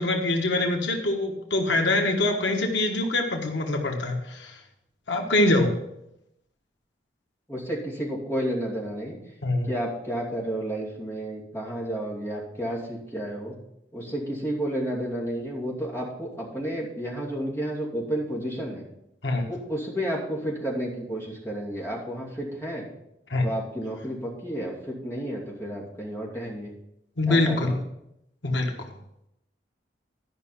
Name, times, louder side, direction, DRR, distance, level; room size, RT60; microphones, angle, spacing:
voice 1, 0.0-4.6 5.1-5.7 9.4-9.7 19.2-19.5 23.3-23.5 27.2-27.8 28.4-28.7, left 2 dB, 90° left, 2 dB, 1.4 m, -24 dB
voice 2, 7.5-9.2 9.6-13.5 13.9-18.8 19.5-22.8 23.4-26.7 27.3-27.8, right 1 dB, 15° left, -4 dB, 2.6 m, -31 dB
12.0 x 5.7 x 5.7 m, 0.82 s
head